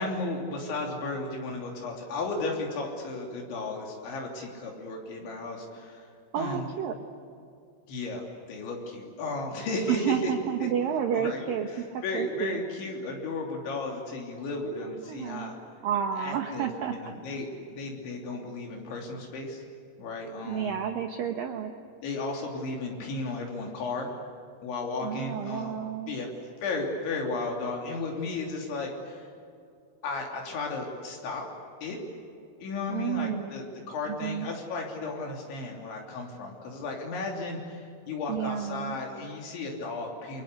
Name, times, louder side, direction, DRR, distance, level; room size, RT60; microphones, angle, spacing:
voice 1, 0.0-6.1 6.4-6.7 7.9-10.3 10.6-10.7 11.1-11.4 11.7-15.6 16.2-19.6 20.0-20.8 22.0-24.1 24.6-25.7 26.1-26.3 26.6-29.3 30.0-31.5 31.8-32.0 32.6-40.4, left 3 dB, 75° left, 0 dB, 5.4 m, -34 dB
voice 2, 6.3-6.9 9.9-12.6 14.6-15.5 15.8-17.0 20.4-21.7 25.0-26.2 32.9-33.5 34.2-34.5 38.3-39.0, right 8 dB, 65° right, 5 dB, 2.3 m, -31 dB
29.5 x 24.0 x 8.2 m, 2.5 s
omnidirectional pair, 5.4 m